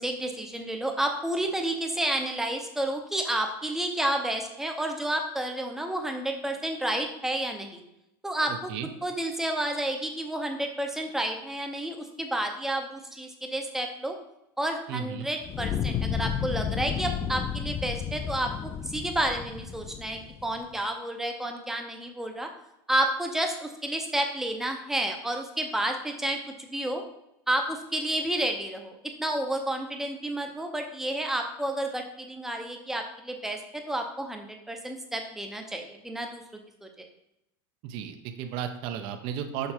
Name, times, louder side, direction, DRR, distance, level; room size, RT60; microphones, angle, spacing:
voice 1, 0.0-7.8 8.2-8.7 9.0-14.2 14.6-18.5 18.8-22.5 22.9-27.0 27.5-36.4 36.8-37.1, right 1 dB, 5° right, 3 dB, 0.7 m, -30 dB
voice 2, 8.5-8.9 14.9-15.3 37.8-39.7, right 9 dB, 45° right, 6 dB, 0.7 m, -34 dB
Fire, 15.4-20.6, left 8 dB, 20° left, 0.3 m, -32 dB
6.7 x 4.7 x 4.4 m, 0.83 s
supercardioid pair, 160°, 12 cm